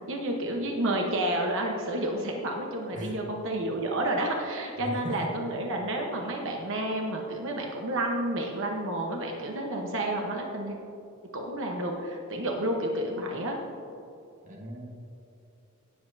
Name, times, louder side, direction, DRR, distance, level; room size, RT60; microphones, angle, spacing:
voice 1, 0.1-10.8 11.3-13.6, right 1 dB, 60° right, 1 dB, 1.0 m, -30 dB
voice 2, 4.8-5.3 14.4-14.9, right 1 dB, 35° right, 0 dB, 1.3 m, -37 dB
18.5 x 7.7 x 2.7 m, 2.8 s
head